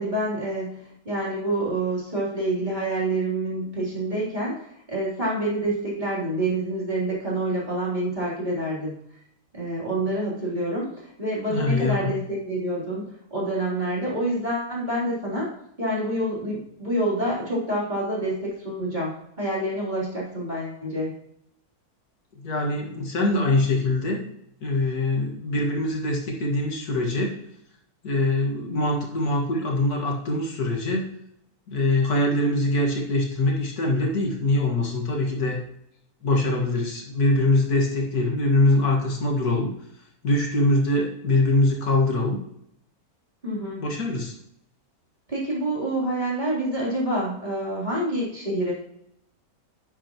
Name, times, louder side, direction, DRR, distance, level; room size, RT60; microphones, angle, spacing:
voice 1, 0.0-8.9 9.5-15.5 15.8-21.2 43.4-44.0 45.3-48.7, right 1 dB, 30° right, -6 dB, 3.6 m, -27 dB
voice 2, 11.5-12.1 22.4-24.2 24.6-27.3 28.0-31.1 31.7-35.6 36.2-39.7 40.2-42.4 43.6-44.3, left 2 dB, 80° left, 0 dB, 2.4 m, -23 dB
11.0 x 8.7 x 3.0 m, 0.74 s
omnidirectional pair, 1.6 m